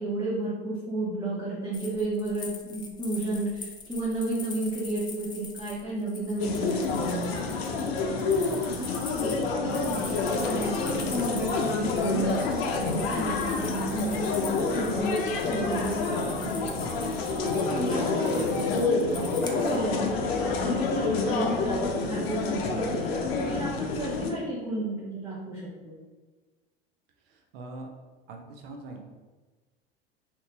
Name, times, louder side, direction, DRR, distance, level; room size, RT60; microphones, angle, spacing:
voice 1, 0.0-7.7 8.3-10.1 10.5-15.1 15.4-16.7 17.4-23.1 23.5-25.9, right 1 dB, 10° right, -10 dB, 0.8 m, -33 dB
sound 1, 1.7-19.8, left 4 dB, 15° left, 0.3 m, -43 dB
sound 2, 6.4-24.3, left 4 dB, 70° left, 0.6 m, -28 dB
voice 2, 27.2-27.9 28.3-29.0, right 2 dB, 70° right, 2 dB, 0.7 m, -42 dB
2.9 x 2.7 x 3.2 m, 1.3 s
hypercardioid pair, 95°, 31 cm